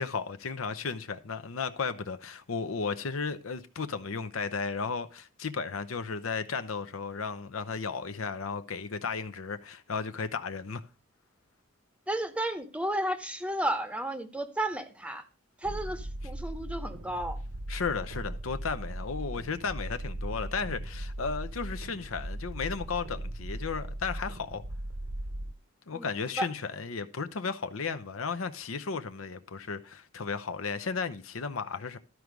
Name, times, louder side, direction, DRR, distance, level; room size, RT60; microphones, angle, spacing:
voice 1, 0.0-10.8 17.7-24.6 25.9-32.0, left 5 dB, 80° left, 0.7 m, -34 dB
voice 2, 12.1-15.2 15.6-17.4 25.9-26.1 26.4-26.5, right 1 dB, 5° right, 0.8 m, -32 dB
sound 1, 15.6-25.5, right 1 dB, 65° right, 0.9 m, -38 dB
13.0 x 4.7 x 5.1 m
head